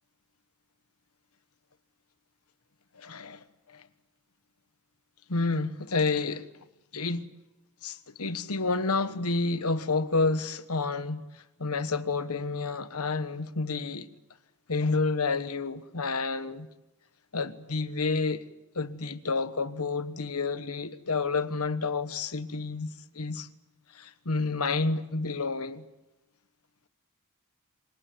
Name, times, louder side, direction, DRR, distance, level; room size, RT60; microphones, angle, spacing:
voice 1, 2.9-3.4 3.7-3.8 5.3-6.5 6.9-7.3 7.8-14.1 14.7-16.7 17.3-18.5 18.7-23.5 23.9-25.8, left 3 dB, 70° left, 1.3 m, -29 dB
25.5 x 18.5 x 9.2 m
head